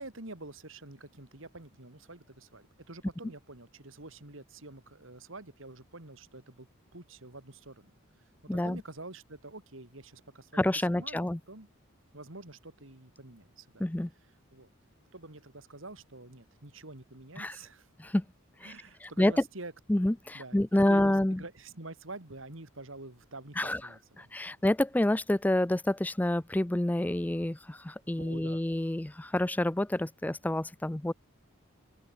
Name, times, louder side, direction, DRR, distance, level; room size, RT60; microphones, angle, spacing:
voice 1, 0.0-7.9 8.5-11.7 12.1-13.9 14.5-14.7 15.1-17.9 18.6-19.7 20.3-20.6 20.9-24.5 28.1-28.6, right 2 dB, 70° right, 3.1 m, -47 dB
voice 2, 8.5-8.8 10.5-11.4 13.8-14.1 17.4-17.6 18.0-18.2 18.6-18.7 19.0-19.3 19.9-21.4 23.6-23.8 24.2-31.1, left 1 dB, 10° left, 0.3 m, -28 dB
open air
head